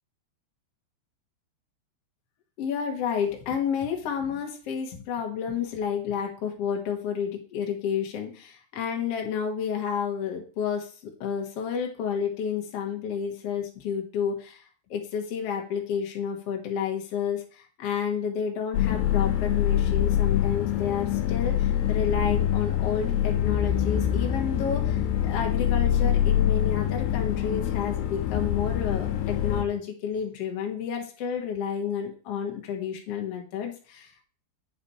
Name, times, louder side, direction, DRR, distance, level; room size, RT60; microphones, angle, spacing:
voice 1, 2.6-10.9 11.2-14.6 14.9-34.2, left 7 dB, 65° left, 2 dB, 1.5 m, -30 dB
sound 1, 18.7-29.6, left 11 dB, 85° left, 3.1 m, -25 dB
8.5 x 6.2 x 4.2 m, 0.39 s
omnidirectional pair, 4.9 m